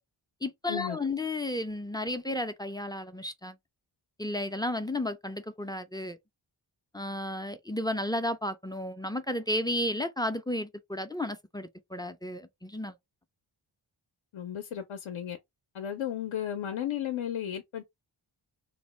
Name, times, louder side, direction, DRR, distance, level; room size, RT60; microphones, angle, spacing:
voice 1, 0.4-3.6 4.2-6.2 6.9-13.0, left 1 dB, 10° left, 0.3 m, -33 dB
voice 2, 14.3-15.4 15.7-17.8, left 10 dB, 70° left, 0.6 m, -34 dB
2.6 x 2.1 x 3.1 m
cardioid pair, 50°, 49 cm